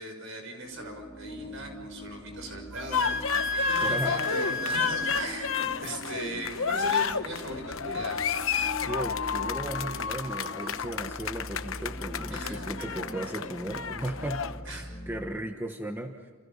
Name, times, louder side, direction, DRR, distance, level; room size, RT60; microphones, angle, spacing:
voice 1, 0.0-3.2 3.5-8.2 12.3-12.7 13.2-13.3 14.6-14.9, right 1 dB, 60° right, 4 dB, 6.4 m, -39 dB
sound 1, 0.5-15.3, equal, 35° left, 6.5 m, -43 dB
Wind instrument woodwind instrument, 2.7-5.3, left 2 dB, 80° right, 1.6 m, -30 dB
sound 2, 2.9-14.6, left 6 dB, 65° left, 1.0 m, -31 dB
voice 2, 3.8-4.2 8.8-16.1, right 1 dB, 10° right, 3 dB, 1.3 m, -36 dB
29.5 x 29.5 x 5.7 m, 1.4 s
head